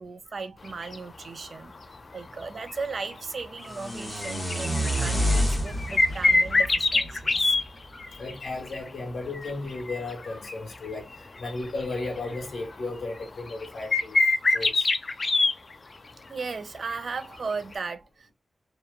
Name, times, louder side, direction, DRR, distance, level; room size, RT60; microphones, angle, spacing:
voice 1, 0.0-1.7 2.1-7.6 16.3-18.3, right 4 dB, 55° right, 0.3 m, -36 dB
sound 1, 0.6-1.0 1.8-1.9 2.4-2.7 3.0-3.1 3.4-3.7 4.1-7.6 8.0-8.9 9.3-10.8 11.1-11.2 11.5-12.6 13.2-13.3 13.5-15.5 16.9-17.0 17.7-17.8, left 3 dB, 40° left, 0.3 m, -24 dB
sound 2, 3.7-7.8, equal, 15° left, 0.9 m, -28 dB
voice 2, 7.9-11.1 11.4-14.2 14.5-14.9, left 2 dB, 80° left, 1.1 m, -35 dB
2.8 x 2.1 x 2.3 m
wide cardioid pair, 125°, 0 cm